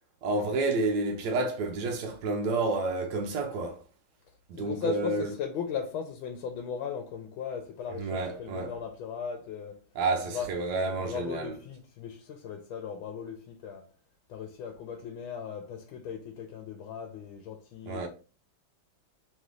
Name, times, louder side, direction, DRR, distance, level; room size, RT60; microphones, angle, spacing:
voice 1, 0.2-3.8 4.5-5.3 8.0-8.7 10.0-11.5 17.9-18.1, right 3 dB, 70° right, 1.1 m, -30 dB
voice 2, 4.6-9.8 10.3-10.5 11.0-13.9 14.3-18.1, left 7 dB, 85° left, 1.4 m, -37 dB
3.3 x 3.2 x 3.6 m
omnidirectional pair, 2.2 m